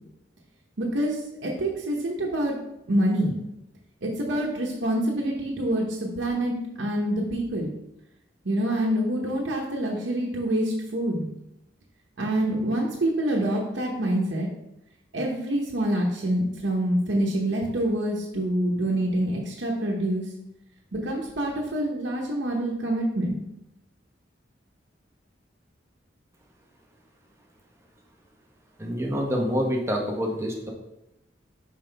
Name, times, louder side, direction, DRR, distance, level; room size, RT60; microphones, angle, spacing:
voice 1, 0.8-2.6 2.9-3.3 4.0-7.7 8.4-11.3 12.2-14.5 15.1-20.2 20.9-23.4, right 1 dB, 85° right, -2 dB, 0.9 m, -26 dB
voice 2, 28.8-30.7, equal, 15° right, 0 dB, 0.9 m, -27 dB
5.7 x 5.1 x 3.4 m, 0.87 s
head